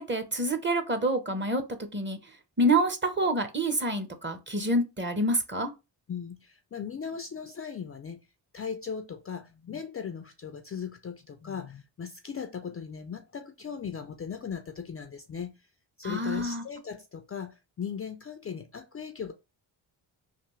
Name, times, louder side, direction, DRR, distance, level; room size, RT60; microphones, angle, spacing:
voice 1, 0.0-1.6 1.9-2.2 2.6-5.7 16.0-16.6, right 1 dB, 25° right, 0.8 m, -27 dB
voice 2, 6.1-8.2 8.5-15.5 16.0-19.3, left 7 dB, 30° left, 0.4 m, -38 dB
3.4 x 2.4 x 3.1 m
supercardioid pair, 50°, 48 cm